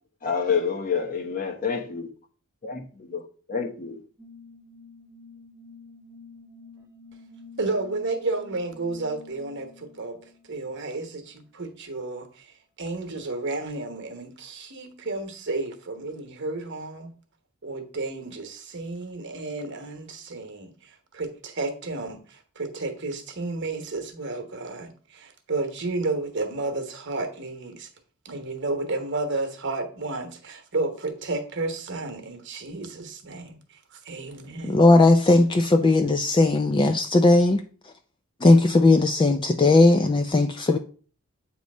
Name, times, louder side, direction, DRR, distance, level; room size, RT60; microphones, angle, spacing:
voice 1, 0.2-2.1 2.6-3.2 3.5-4.0, left 6 dB, 40° left, 1.0 m, -28 dB
sound 1, 4.2-11.2, left 3 dB, 15° right, 1.0 m, -49 dB
voice 2, 7.6-10.2 10.5-17.1 17.6-27.9 28.2-33.8 34.0-34.8, right 3 dB, 55° right, 1.1 m, -32 dB
voice 3, 34.7-37.6 38.4-40.8, left 2 dB, 20° left, 0.3 m, -18 dB
8.2 x 3.1 x 5.3 m
head